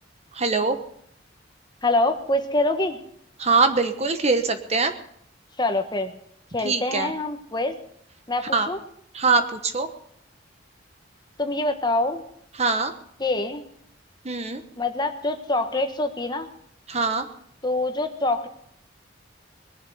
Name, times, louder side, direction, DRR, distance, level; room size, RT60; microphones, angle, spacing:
voice 1, 0.3-0.8 3.4-4.9 6.6-7.1 8.5-8.7 9.1-9.9 12.6-12.9 14.2-14.6 16.9-17.3, right 4 dB, 35° right, 8 dB, 1.1 m, -22 dB
voice 2, 1.8-3.0 5.6-6.1 6.5-7.8 8.3-8.8 11.4-12.2 13.2-13.6 14.8-16.5 17.6-18.5, left 2 dB, 25° left, 7 dB, 1.2 m, -25 dB
20.0 x 7.3 x 7.9 m, 0.68 s
head